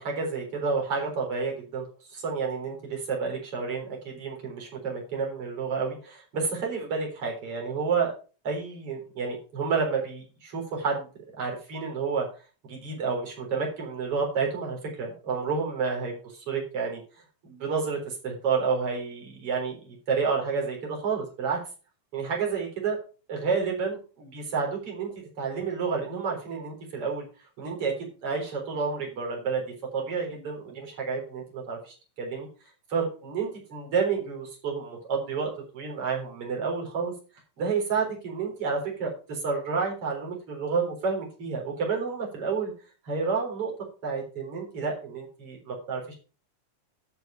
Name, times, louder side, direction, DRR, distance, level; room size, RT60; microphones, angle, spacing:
voice 1, 0.0-8.1 8.4-11.1 11.4-12.3 12.6-17.0 17.4-21.6 22.1-23.0 23.3-27.2 27.6-29.7 29.9-32.5 32.9-37.1 37.6-42.7 43.0-43.7 44.0-46.1, right 5 dB, 40° right, 0 dB, 4.6 m, -30 dB
11.5 x 6.2 x 5.7 m, 0.36 s
omnidirectional pair, 4.0 m